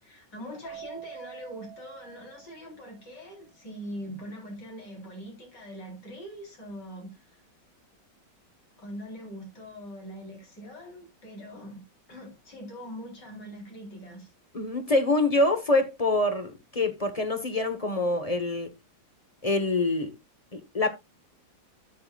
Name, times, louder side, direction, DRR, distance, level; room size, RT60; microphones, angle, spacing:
voice 1, 0.0-7.4 8.8-11.8 12.1-14.3, equal, 65° left, 4.4 m, -42 dB
Keyboard (musical), 0.6-3.1, right 8 dB, 50° left, 1.6 m, -45 dB
voice 2, 14.5-18.7 19.4-20.1 20.5-20.9, left 2 dB, 25° left, 0.9 m, -25 dB
12.5 x 7.7 x 2.3 m
omnidirectional pair, 2.0 m